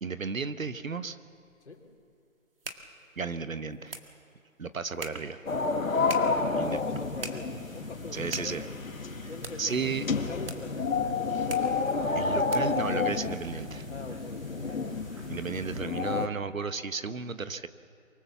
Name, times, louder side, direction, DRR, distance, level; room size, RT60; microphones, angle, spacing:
voice 1, 0.0-1.2 3.2-3.9 4.6-5.4 6.5-6.8 8.1-8.7 9.6-10.1 12.1-13.9 15.3-17.7, right 5 dB, 70° right, 11 dB, 1.4 m, -33 dB
sound 1, 1.3-12.9, right 3 dB, 40° right, 1.9 m, -46 dB
sound 2, 5.5-16.3, left 4 dB, 70° left, 1.8 m, -30 dB
voice 2, 5.8-8.9 9.3-11.1 13.9-14.7, left 3 dB, 55° left, 2 dB, 3.3 m, -44 dB
sound 3, 6.6-15.8, equal, 20° right, 2.8 m, -46 dB
24.0 x 23.5 x 7.3 m, 2.4 s
hypercardioid pair, 175°, 41 cm